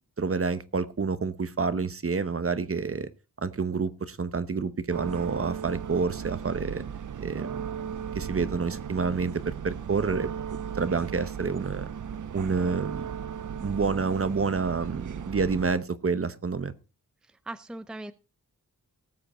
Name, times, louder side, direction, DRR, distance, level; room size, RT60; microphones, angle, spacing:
voice 1, 0.2-3.1 3.4-6.8 7.2-7.6 8.1-11.9 12.3-13.1 13.6-16.7, right 4 dB, 40° right, 14 dB, 1.0 m, -28 dB
sound 1, 4.9-15.8, right 8 dB, 55° right, 0.6 m, -36 dB
voice 2, 17.2-18.1, right 2 dB, ahead, 12 dB, 0.6 m, -40 dB
18.5 x 7.8 x 4.3 m, 0.31 s
wide cardioid pair, 140°, 36 cm